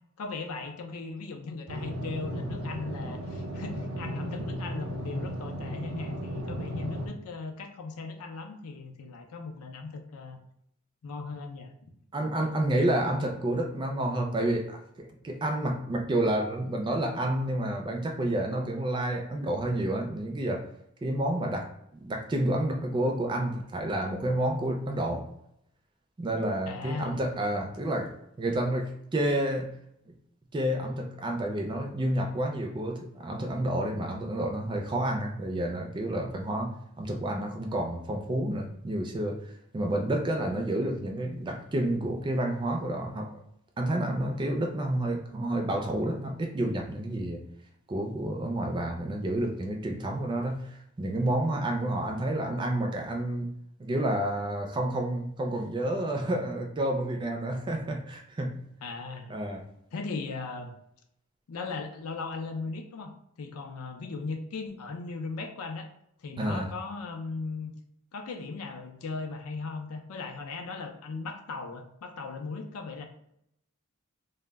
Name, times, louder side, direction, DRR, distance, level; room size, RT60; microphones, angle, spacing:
voice 1, 0.2-10.4 11.0-11.9 26.7-27.2 58.8-59.4 59.9-60.7 61.5-65.9 66.2-67.7 68.1-73.1, left 4 dB, 85° left, 4 dB, 0.5 m, -38 dB
sound 1, 1.7-7.1, equal, 85° right, 0.6 m, -35 dB
voice 2, 12.1-20.7 21.0-25.3 26.2-29.7 30.5-39.4 39.7-43.3 43.8-47.4 47.9-53.5 53.8-58.6 59.3-59.6 66.4-66.7, right 1 dB, 20° right, 2 dB, 0.3 m, -30 dB
2.1 x 2.1 x 3.4 m, 0.75 s
head